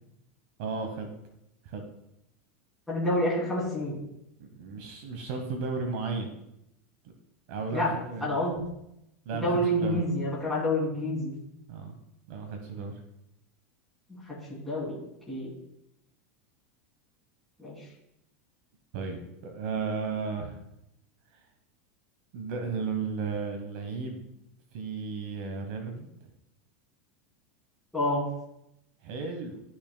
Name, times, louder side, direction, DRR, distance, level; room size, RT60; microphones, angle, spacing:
voice 1, 0.6-1.1 1.6-1.9 4.4-6.3 7.5-8.3 9.2-10.0 11.7-11.9 12.3-13.0 18.9-20.6 21.3-21.4 22.3-24.2 24.7-26.1 29.0-29.6, right 4 dB, 50° right, 5 dB, 1.0 m, -34 dB
voice 2, 2.9-4.0 7.7-7.9 8.2-8.6 9.4-11.3 14.1-14.2 14.5-15.0 15.3-15.5 17.6-17.8 27.9-28.2, left 1 dB, ahead, -7 dB, 2.8 m, -28 dB
12.5 x 6.0 x 2.2 m, 0.83 s
supercardioid pair, 170°, 7 cm